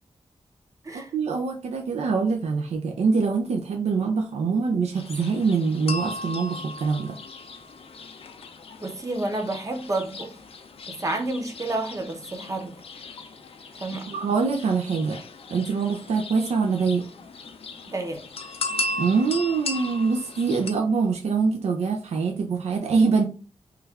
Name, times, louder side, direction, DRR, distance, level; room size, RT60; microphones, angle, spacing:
voice 1, 0.9-7.2 14.1-15.2 15.5-17.1 19.0-23.2, right 5 dB, 85° right, 0.4 m, -24 dB
sound 1, 4.9-20.7, left 2 dB, 65° left, 0.5 m, -37 dB
voice 2, 8.8-10.3 10.9-12.8 13.8-14.1 17.9-18.2, right 2 dB, 30° right, 0.7 m, -30 dB
3.1 x 2.3 x 3.4 m
wide cardioid pair, 100°, 11 cm